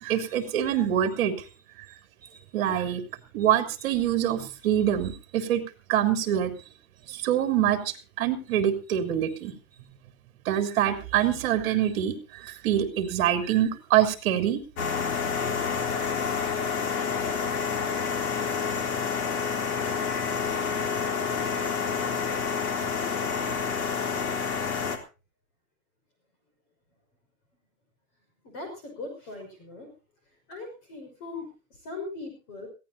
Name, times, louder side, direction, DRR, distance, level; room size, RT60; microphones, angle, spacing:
voice 1, 0.0-1.3 2.5-3.0 3.3-5.6 5.9-6.6 7.1-9.5 10.4-12.1 12.4-14.6, right 10 dB, 40° right, 7 dB, 3.2 m, -25 dB
sound 1, 14.8-25.0, left 6 dB, 75° left, 3.9 m, -28 dB
voice 2, 28.4-29.9 30.5-32.7, left 3 dB, 35° left, 3 dB, 6.0 m, -39 dB
21.5 x 16.5 x 2.8 m, 0.32 s
supercardioid pair, 180°, 44 cm